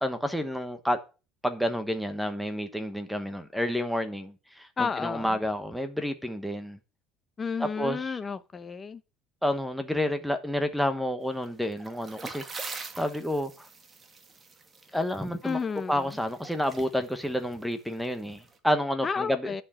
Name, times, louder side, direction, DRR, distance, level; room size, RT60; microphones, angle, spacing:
voice 1, 0.0-1.0 1.4-6.8 7.6-8.2 9.4-13.7 14.9-15.6 15.9-19.5, equal, ahead, 1.1 m, -30 dB
voice 2, 4.8-5.4 7.4-9.0 15.4-16.2 19.0-19.6, left 5 dB, 25° left, 0.8 m, -32 dB
sound 1, 11.4-18.6, right 4 dB, 25° right, 1.5 m, -44 dB
10.5 x 4.6 x 7.2 m
cardioid pair, 125°, 0 cm